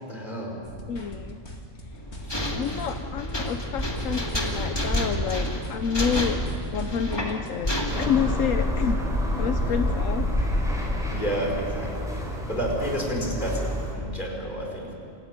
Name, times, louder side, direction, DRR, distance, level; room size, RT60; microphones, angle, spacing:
voice 1, 0.1-0.6 2.2-2.7 9.7-9.8 11.1-14.9, equal, 35° left, -1 dB, 4.9 m, -31 dB
sound 1, 0.6-7.5, equal, 55° left, 2.8 m, -41 dB
voice 2, 0.9-1.4 2.5-6.4 6.7-9.0 9.4-10.3 11.2-11.3, left 8 dB, 80° left, 8 dB, 1.2 m, -29 dB
sound 2, 1.9-8.1, equal, 20° left, 2.3 m, -29 dB
sound 3, 7.9-13.9, left 1 dB, ahead, 4.4 m, -27 dB
27.5 x 14.0 x 9.5 m, 2.6 s
omnidirectional pair, 1.3 m